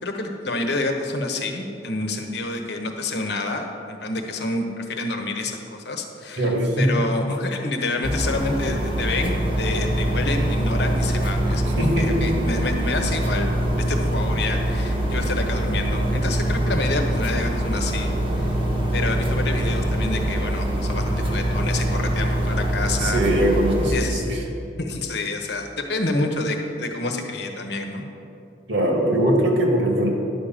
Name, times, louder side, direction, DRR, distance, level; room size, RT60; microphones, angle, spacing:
voice 1, 0.0-18.5 18.9-23.2 23.9-24.2 24.8-28.0, left 2 dB, 60° left, 4 dB, 1.0 m, -28 dB
voice 2, 6.4-7.0 11.8-12.4 23.0-24.4 28.7-30.1, right 1 dB, 75° right, 0 dB, 1.9 m, -21 dB
sound 1, 8.0-23.9, right 1 dB, 25° right, 1.1 m, -24 dB
11.0 x 5.0 x 7.4 m, 2.8 s
head